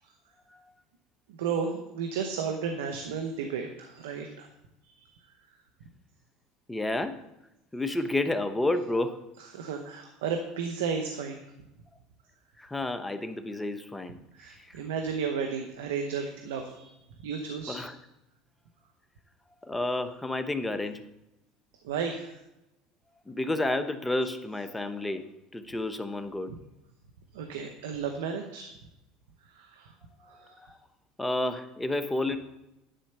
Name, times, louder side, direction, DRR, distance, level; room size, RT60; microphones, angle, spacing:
voice 1, 1.4-4.5 9.5-11.4 14.3-16.9 17.2-17.8 21.8-22.4 27.3-28.7 29.5-29.9 30.3-30.5, right 6 dB, 85° right, 5 dB, 0.9 m, -33 dB
voice 2, 6.7-7.1 7.7-9.2 12.6-14.2 14.5-14.8 17.7-17.9 19.6-21.0 23.3-25.2 25.5-26.5 30.2-30.8 31.2-32.4, left 2 dB, 10° left, 8 dB, 0.9 m, -30 dB
10.0 x 4.3 x 6.7 m, 0.90 s
supercardioid pair, 95°, 0 cm